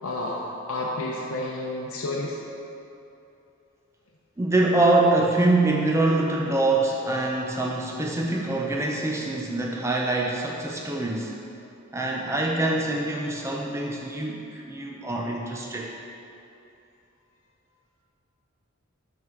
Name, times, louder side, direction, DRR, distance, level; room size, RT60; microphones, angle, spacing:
voice 1, 0.0-2.4, left 2 dB, 70° left, -4 dB, 0.7 m, -30 dB
voice 2, 4.4-11.4 11.9-15.9, right 2 dB, 10° right, -1 dB, 0.4 m, -24 dB
10.0 x 4.5 x 3.7 m, 2.7 s
head